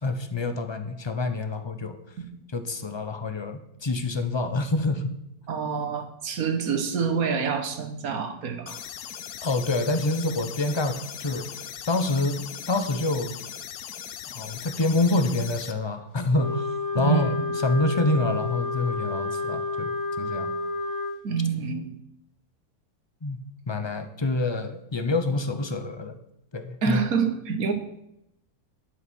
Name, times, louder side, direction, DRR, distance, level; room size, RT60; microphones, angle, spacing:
voice 1, 0.0-2.0 2.5-5.1 9.4-11.5 11.9-13.4 14.3-16.7 16.9-19.9 20.2-20.5 23.2-23.4 23.7-26.2 26.5-27.0, left 2 dB, 30° left, 9 dB, 0.5 m, -27 dB
voice 2, 5.5-8.8 16.9-17.3 21.2-21.9 26.8-27.7, right 6 dB, 65° right, 6 dB, 1.6 m, -27 dB
sound 1, 8.7-15.7, left 9 dB, 80° left, 1.2 m, -39 dB
Wind instrument woodwind instrument, 16.3-21.2, left 3 dB, 50° left, 1.5 m, -30 dB
11.0 x 6.3 x 6.1 m, 0.82 s
omnidirectional pair, 1.7 m